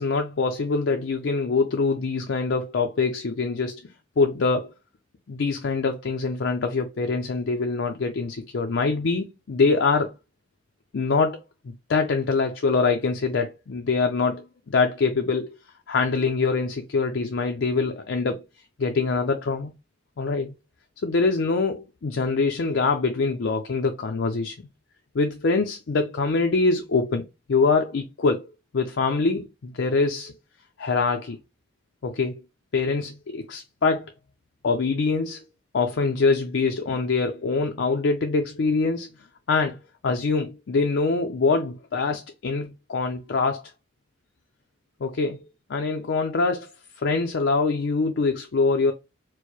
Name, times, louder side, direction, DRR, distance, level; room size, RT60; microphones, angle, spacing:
voice 1, 0.0-3.8 4.2-4.7 5.3-10.1 10.9-11.4 11.6-15.5 15.9-18.4 18.8-19.7 20.2-20.5 21.0-24.6 25.1-27.2 27.5-28.5 28.7-30.3 30.8-31.4 32.0-32.3 32.7-34.1 34.6-35.4 35.7-39.1 39.5-43.6 45.0-45.4 45.7-46.7 47.0-48.9, left 4 dB, 70° left, 0.5 m, -24 dB
4.6 x 2.1 x 2.9 m
head